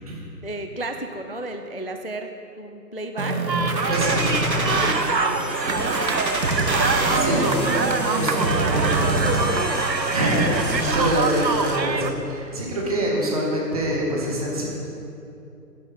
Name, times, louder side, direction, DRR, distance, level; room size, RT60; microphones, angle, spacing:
voice 1, 0.4-2.3 2.6-3.4 3.8-3.9 4.5-6.5 7.1-7.5 8.3-9.8, right 1 dB, 40° left, 5 dB, 0.4 m, -34 dB
sound 1, 3.2-4.9 5.7-9.7 10.2-11.2, right 2 dB, 55° right, 1.5 m, -25 dB
sound 2, 3.5-12.1, right 4 dB, 85° right, 1.0 m, -25 dB
sound 3, 3.9-11.9, left 3 dB, 60° left, 1.5 m, -37 dB
voice 2, 3.9-4.4 6.9-7.7 8.0-8.5 10.1-14.6, equal, 20° right, -2 dB, 1.8 m, -25 dB
11.5 x 10.5 x 5.4 m, 2.7 s
figure-of-eight pair, 150°, 49 cm